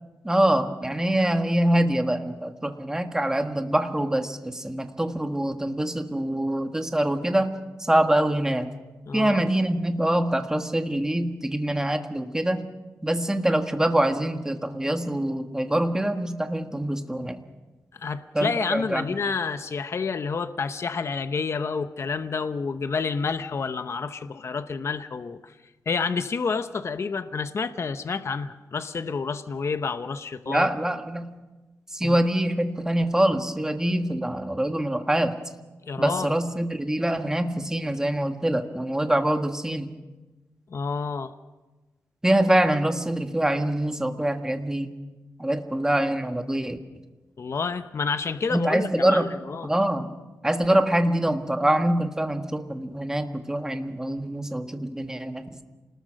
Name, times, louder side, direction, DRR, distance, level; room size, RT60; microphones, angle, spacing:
voice 1, 0.2-8.7 9.1-12.7 13.0-17.4 18.3-19.1 30.5-31.3 31.9-35.4 36.0-39.9 42.2-44.9 45.4-46.8 48.5-49.3 49.6-50.1 50.4-55.6, right 1 dB, 10° right, 6 dB, 1.6 m, -24 dB
voice 2, 9.1-9.5 17.9-25.5 25.9-30.7 32.0-32.2 35.9-36.3 40.7-41.3 47.4-49.7, left 5 dB, 50° left, 10 dB, 0.9 m, -29 dB
28.0 x 20.0 x 6.4 m, 1.2 s
wide cardioid pair, 115°, 6 cm